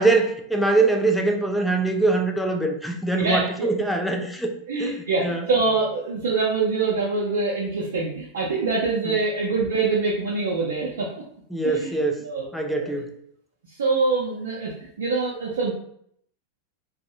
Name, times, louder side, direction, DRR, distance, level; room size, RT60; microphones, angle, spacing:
voice 1, 0.0-4.5 4.8-5.5 11.5-13.1, right 3 dB, ahead, 3 dB, 0.3 m, -23 dB
voice 2, 3.1-3.7 4.7-11.1 11.6-11.9 12.2-12.5 12.8-12.9 13.7-15.7, right 4 dB, 60° right, -3 dB, 0.4 m, -24 dB
2.6 x 2.0 x 2.6 m, 0.68 s
figure-of-eight pair, 90°, 0 cm